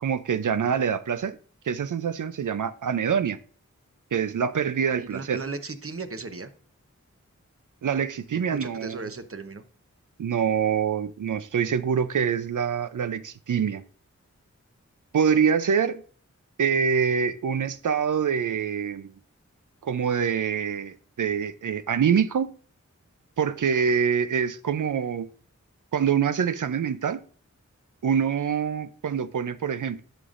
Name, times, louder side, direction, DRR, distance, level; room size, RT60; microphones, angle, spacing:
voice 1, 0.0-1.4 1.6-3.4 4.1-5.4 7.8-9.0 10.2-13.8 15.1-16.0 16.6-19.1 19.8-22.5 23.4-25.3 25.9-27.2 28.0-30.0, right 7 dB, 80° right, 0.5 m, -25 dB
voice 2, 5.0-6.5 8.3-9.6, right 3 dB, 45° right, 0.8 m, -36 dB
11.0 x 5.1 x 2.5 m
wide cardioid pair, 65°, 30 cm